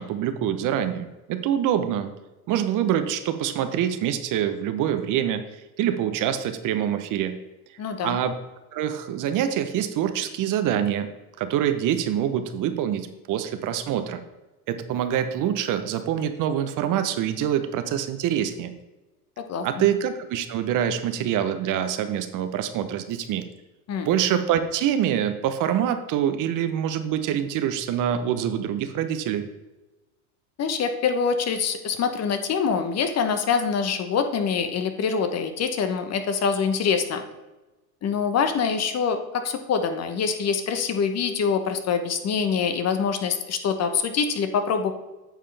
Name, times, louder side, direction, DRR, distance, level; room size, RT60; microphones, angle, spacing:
voice 1, 0.0-2.1 2.5-7.4 8.0-8.3 8.7-11.1 11.4-14.2 14.7-18.7 19.6-23.4 24.0-29.5, right 10 dB, 45° right, 9 dB, 0.8 m, -25 dB
voice 2, 7.8-8.2 19.4-19.9 23.9-24.1 30.6-37.2 38.0-44.9, left 6 dB, 35° left, 8 dB, 1.0 m, -25 dB
9.1 x 6.6 x 3.3 m, 1.1 s
hypercardioid pair, 90°, 46 cm